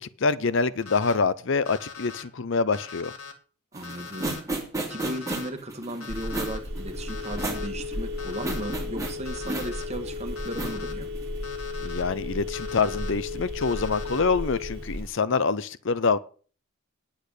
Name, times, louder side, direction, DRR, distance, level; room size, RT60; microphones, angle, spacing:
voice 1, 0.0-3.1 11.8-16.2, left 4 dB, 60° left, 0.6 m, -25 dB
Alarm, 0.8-1.1 1.7-2.2 2.7-3.3 3.8-4.4 4.9-5.5 6.0-6.6 7.1-7.7 8.2-8.8 9.3-9.9 10.4-10.9 11.4-12.0 12.5-13.1 13.6-14.2, left 5 dB, 85° left, 2.3 m, -41 dB
sound 1, 3.7-11.4, right 2 dB, 15° right, 2.9 m, -34 dB
voice 2, 3.7-4.6 4.9-11.1, right 1 dB, 30° right, 1.9 m, -36 dB
Telephone, 6.1-15.1, left 2 dB, 50° right, 1.8 m, -34 dB
10.0 x 8.8 x 6.7 m
head